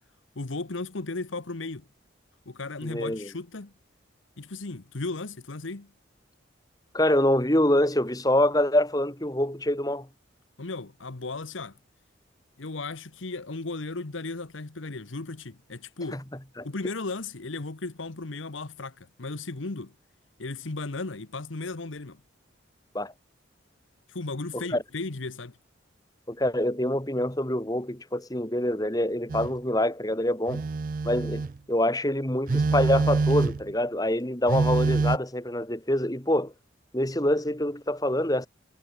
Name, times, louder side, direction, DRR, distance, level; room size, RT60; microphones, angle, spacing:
voice 1, 0.3-1.9 2.5-3.7 4.4-5.9 10.6-11.8 12.6-16.2 16.6-19.9 20.4-22.2 24.1-25.6, left 3 dB, 80° left, 1.2 m, -35 dB
voice 2, 2.8-3.3 6.9-10.1 16.1-16.2 16.6-16.7 22.9-23.1 24.5-24.8 26.3-30.6 31.0-36.5 36.9-38.5, left 1 dB, 20° left, 2.3 m, -25 dB
Telephone, 29.3-29.6 30.5-31.6 32.5-33.7 34.5-35.2, right 3 dB, 45° right, 0.4 m, -25 dB
head